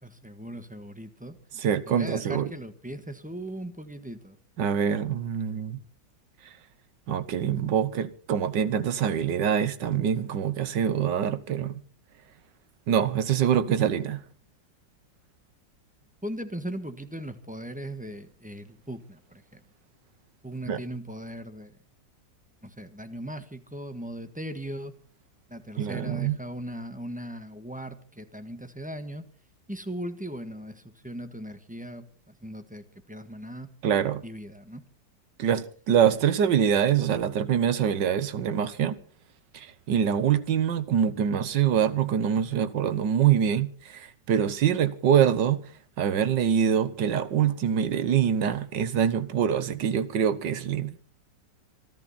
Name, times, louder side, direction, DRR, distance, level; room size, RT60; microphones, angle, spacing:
voice 1, 0.0-1.4 1.9-4.4 16.2-19.6 20.4-21.8 22.6-24.9 25.5-29.2 29.7-32.1 32.4-33.7 34.2-34.8, right 1 dB, 5° right, 1.1 m, -38 dB
voice 2, 1.5-2.5 4.6-5.8 7.1-11.7 12.9-14.2 20.7-20.8 25.8-26.4 33.8-34.2 35.4-39.0 39.5-45.6 46.0-51.0, right 8 dB, 75° right, 1.7 m, -25 dB
26.0 x 12.0 x 4.2 m
omnidirectional pair, 2.0 m